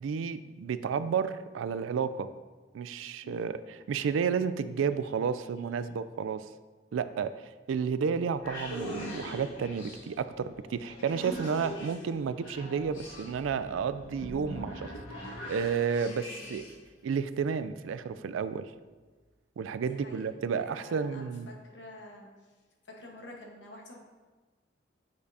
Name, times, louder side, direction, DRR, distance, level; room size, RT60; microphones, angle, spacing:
voice 1, 0.0-2.3 2.7-6.5 6.9-16.6 17.0-18.7 19.6-21.5, right 6 dB, 90° right, 13 dB, 0.3 m, -32 dB
sound 1, 8.3-16.9, equal, 85° left, 1.3 m, -42 dB
voice 2, 16.2-16.6 19.8-22.3 22.8-24.0, left 1 dB, 65° left, 0 dB, 1.1 m, -49 dB
8.4 x 5.1 x 2.7 m, 1.3 s
head